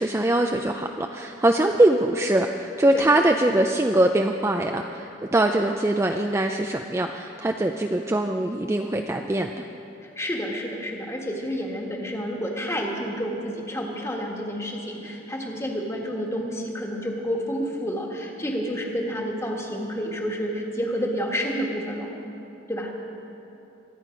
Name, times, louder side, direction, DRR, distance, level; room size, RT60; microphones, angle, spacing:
voice 1, 0.0-9.6, right 1 dB, 15° right, 4 dB, 0.4 m, -22 dB
voice 2, 10.0-22.1 22.7-22.9, equal, 15° left, 0 dB, 1.5 m, -29 dB
24.5 x 9.3 x 5.2 m, 2.9 s
head